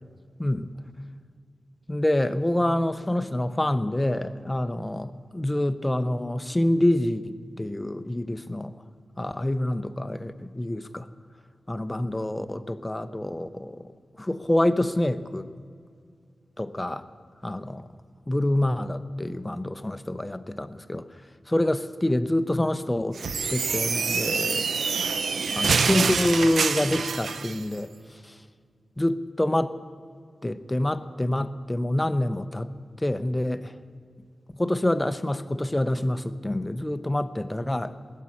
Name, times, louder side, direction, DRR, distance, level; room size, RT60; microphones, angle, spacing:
voice 1, 1.9-8.7 9.2-11.1 11.7-13.9 14.2-15.5 16.6-17.0 17.4-17.9 18.3-21.1 21.5-23.2 23.5-24.7 25.5-27.9 28.2-28.3 29.0-29.7 30.4-32.7 33.0-33.7 34.6-37.9, left 1 dB, 10° left, 12 dB, 0.6 m, -26 dB
sound 1, 23.2-27.6, right 5 dB, 80° right, 0.6 m, -26 dB
19.5 x 7.4 x 9.7 m, 2.2 s
wide cardioid pair, 140°, 0 cm